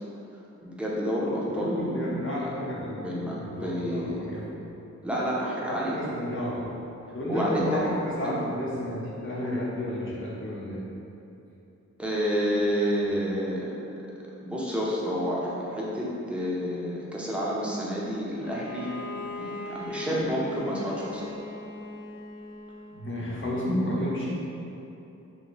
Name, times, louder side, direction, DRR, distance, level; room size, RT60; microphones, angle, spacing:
voice 1, 0.6-2.5 3.0-4.2 5.0-6.0 7.3-7.8 8.2-8.3 12.0-13.8 14.4-18.9 19.4-21.3, equal, 5° right, -6 dB, 0.6 m, -29 dB
voice 2, 1.5-4.5 5.7-6.7 7.1-10.8 22.9-24.4, left 1 dB, 45° left, -6 dB, 0.8 m, -31 dB
Bowed string instrument, 18.4-23.1, left 2 dB, 75° left, 0.5 m, -40 dB
3.0 x 2.7 x 3.9 m, 2.9 s
wide cardioid pair, 95°, 29 cm